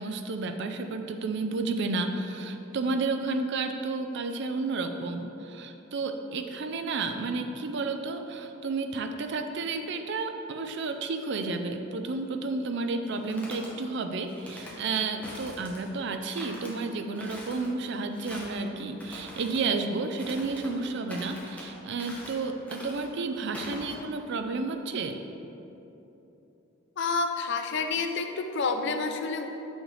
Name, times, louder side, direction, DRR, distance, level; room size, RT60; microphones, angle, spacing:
voice 1, 0.0-25.2, right 3 dB, 60° right, 7 dB, 0.4 m, -31 dB
sound 1, 13.0-13.7 14.3-14.8 15.2-15.9 16.3-16.7 17.1-17.7 18.1-18.6 19.0-19.6 20.2-20.7 21.1-21.7 22.0-22.4 22.7-23.1 23.5-23.9, left 1 dB, 5° left, 1.1 m, -43 dB
voice 2, 27.0-29.5, left 4 dB, 60° left, 6 dB, 0.5 m, -29 dB
6.4 x 6.2 x 3.3 m, 3.0 s
head